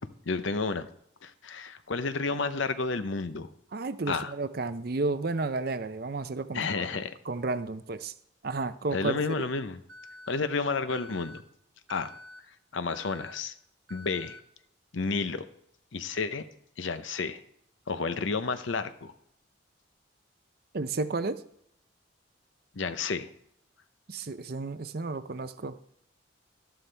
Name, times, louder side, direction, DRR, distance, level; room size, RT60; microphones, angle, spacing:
voice 1, 0.3-0.9 1.2-3.5 4.1-4.3 6.5-7.1 8.9-9.8 10.3-11.4 11.9-12.1 12.7-13.5 13.9-14.4 14.9-15.4 15.9-16.5 16.8-17.4 17.9-19.1 22.7-23.3, left 4 dB, 70° left, 11 dB, 0.7 m, -31 dB
voice 2, 3.7-6.9 7.3-8.1 8.4-9.5 20.7-21.4 24.1-25.8, right 3 dB, 50° right, 12 dB, 0.6 m, -32 dB
Alarm, 9.9-10.4 10.9-11.4 11.9-12.4 12.9-13.4 13.9-14.4, left 1 dB, 65° right, 0.9 m, -48 dB
12.5 x 11.5 x 3.4 m, 0.72 s
head